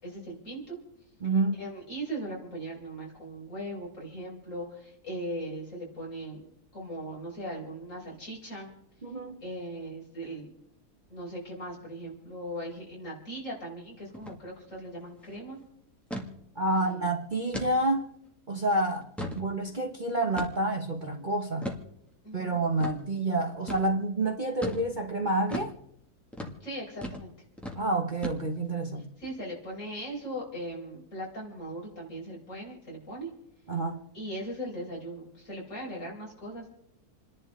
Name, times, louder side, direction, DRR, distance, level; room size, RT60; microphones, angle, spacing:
voice 1, 0.0-0.8 1.6-6.5 6.7-8.7 9.4-10.5 11.1-15.6 16.8-17.1 22.2-22.6 26.6-27.3 29.2-33.3 34.1-36.7, right 1 dB, 55° left, -3 dB, 5.3 m, -39 dB
voice 2, 1.2-1.6 9.0-9.4 16.6-18.1 18.5-19.1 19.3-21.7 22.3-25.7 27.8-29.1 33.7-34.0, right 2 dB, 35° right, 2 dB, 1.1 m, -28 dB
sound 1, 14.1-14.4 14.7-14.8 15.1-15.4 16.1-16.3 16.8-16.9 17.5-17.7 18.3-18.4 18.9-19.5 20.4-20.7 21.6-21.8 22.8-23.0 23.7-23.9 24.6-24.9 25.5-25.7 26.3-26.6 27.0-27.3 27.6-27.8 28.2-28.7, equal, ahead, 1.9 m, -36 dB
29.5 x 11.0 x 3.7 m, 0.76 s
omnidirectional pair, 1.6 m